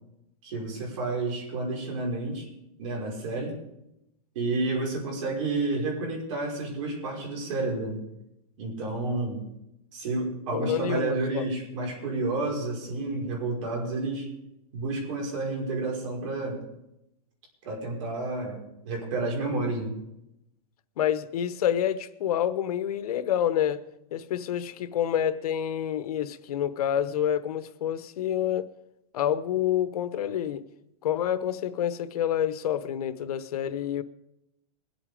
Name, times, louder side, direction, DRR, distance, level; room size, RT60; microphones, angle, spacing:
voice 1, 0.4-2.5 2.8-3.6 4.4-8.0 8.6-9.4 9.9-14.3 14.7-16.6 17.6-19.9, right 2 dB, 55° right, 5.5 m, -30 dB
voice 2, 10.5-11.4 21.0-23.8 24.1-28.7 29.1-30.6 31.0-34.0, left 10 dB, 75° left, 1.0 m, -28 dB
21.5 x 8.3 x 5.1 m
supercardioid pair, 165°, 20 cm